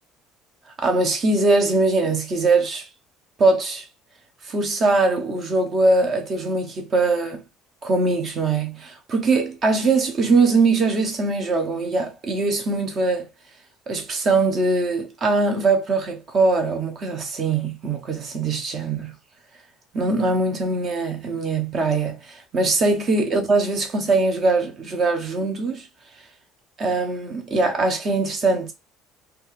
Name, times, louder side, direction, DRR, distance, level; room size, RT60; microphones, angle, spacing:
voice 1, 0.8-2.9 3.4-3.8 4.4-7.4 7.8-13.3 13.9-19.1 19.9-25.9 26.8-28.7, right 3 dB, 30° right, 0.7 m, -21 dB
3.0 x 2.4 x 3.0 m
cardioid pair, 175°, 0 cm